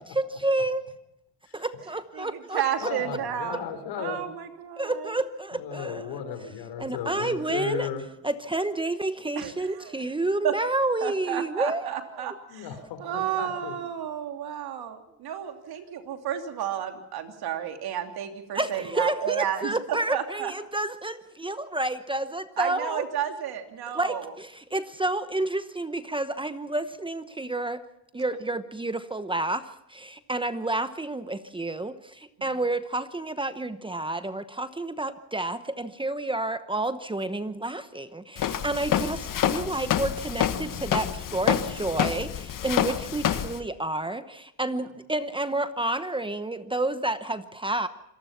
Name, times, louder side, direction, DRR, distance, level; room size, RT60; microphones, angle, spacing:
voice 1, 0.1-0.9 1.5-2.9 4.8-6.2 6.8-7.9 8.2-12.3 18.5-23.1 23.9-27.8 28.1-47.9, right 2 dB, 10° right, 11 dB, 0.9 m, -30 dB
voice 2, 2.2-3.6 4.0-5.1 9.4-10.0 10.4-10.5 11.0-12.7 13.0-20.5 22.6-24.3, right 10 dB, 65° right, 5 dB, 3.0 m, -32 dB
voice 3, 2.8-4.2 5.5-8.0 12.5-13.7, left 7 dB, 80° left, 8 dB, 4.3 m, -35 dB
Walk footsteps, 38.4-43.6, left 10 dB, 55° left, 1.5 m, -27 dB
26.5 x 19.0 x 5.9 m, 0.85 s
cardioid pair, 115°, 40 cm